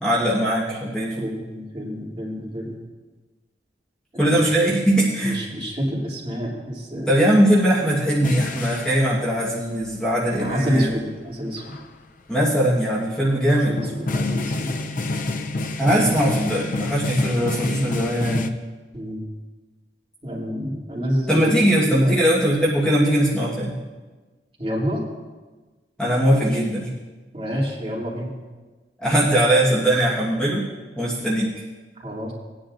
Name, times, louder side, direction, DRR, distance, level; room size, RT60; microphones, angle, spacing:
voice 1, 0.0-1.3 4.2-5.4 7.1-10.9 12.3-13.8 15.8-18.5 21.3-23.8 26.0-26.9 29.0-30.7 30.9-31.6, right 1 dB, 5° left, -7 dB, 1.4 m, -20 dB
voice 2, 1.2-2.8 4.1-4.4 5.2-7.1 10.4-11.8 13.7-14.7 18.9-19.2 20.2-21.6 22.0-22.2 24.6-25.0 27.3-28.3 32.0-32.3, equal, 30° right, -5 dB, 2.8 m, -28 dB
sound 1, 8.2-9.1 10.4-10.5 11.0-11.1 11.6-11.9 13.5-18.5, left 2 dB, 50° left, 0.6 m, -28 dB
19.0 x 10.0 x 2.6 m, 1.3 s
head